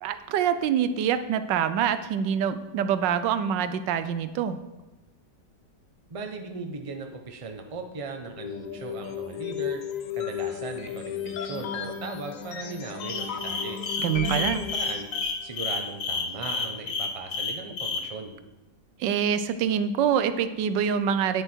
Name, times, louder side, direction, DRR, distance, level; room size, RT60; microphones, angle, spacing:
voice 1, 0.0-4.6 14.0-14.6 19.0-21.4, right 8 dB, 85° right, 11 dB, 1.3 m, -25 dB
voice 2, 6.1-9.8 10.1-13.8 14.2-15.1 15.4-18.3, right 3 dB, 30° right, 4 dB, 0.7 m, -38 dB
sound 1, 8.4-15.5, left 9 dB, 60° left, 1.0 m, -35 dB
sound 2, 13.0-18.0, left 4 dB, 85° left, 1.8 m, -30 dB
9.1 x 8.0 x 4.5 m, 1.0 s
omnidirectional pair, 1.9 m